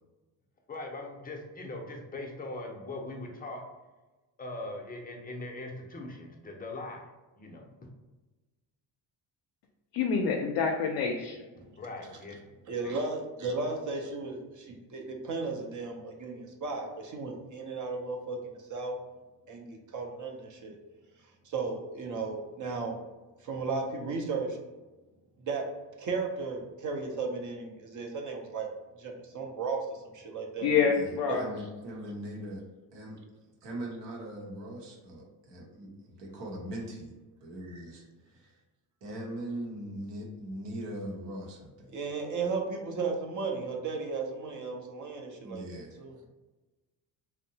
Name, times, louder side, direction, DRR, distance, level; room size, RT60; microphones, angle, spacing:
voice 1, 0.7-3.6 4.4-7.1 7.4-7.6 11.7-12.4 12.8-13.0, left 2 dB, 20° left, 1 dB, 0.5 m, -40 dB
voice 2, 9.9-11.4 30.6-31.5, left 6 dB, 70° left, 1 dB, 0.5 m, -27 dB
voice 3, 12.7-19.0 19.5-20.7 21.4-23.0 23.4-24.6 25.4-25.6 26.0-28.7 29.0-30.7 31.3-31.4 37.7-37.8 41.9-46.2, right 4 dB, 45° right, 2 dB, 0.6 m, -35 dB
voice 4, 30.9-32.6 32.9-33.2 33.6-37.1 37.4-38.6 39.0-42.0 45.3-46.0, right 1 dB, 75° right, -1 dB, 0.9 m, -41 dB
2.7 x 2.1 x 2.7 m, 1.2 s
cardioid pair, 80°, 42 cm